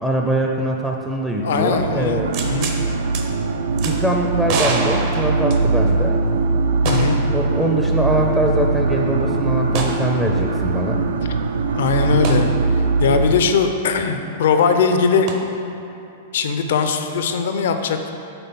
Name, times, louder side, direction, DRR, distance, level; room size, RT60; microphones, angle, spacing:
voice 1, 0.0-2.3 3.8-6.2 7.3-11.0, right 1 dB, 5° right, 0 dB, 0.4 m, -23 dB
voice 2, 1.4-2.7 6.8-7.2 11.7-15.3 16.3-18.1, left 5 dB, 75° left, 7 dB, 0.5 m, -20 dB
sound 1, 1.4-13.3, right 3 dB, 85° right, 0.4 m, -21 dB
sound 2, 2.3-2.8 3.1-3.2 3.8-3.9 4.5-6.0 6.9-7.3 7.6-7.7 9.7-10.0 12.2-12.4 15.3-15.4, right 4 dB, 50° right, 0.7 m, -26 dB
5.6 x 3.5 x 5.7 m, 2.8 s
hypercardioid pair, 130°, 0 cm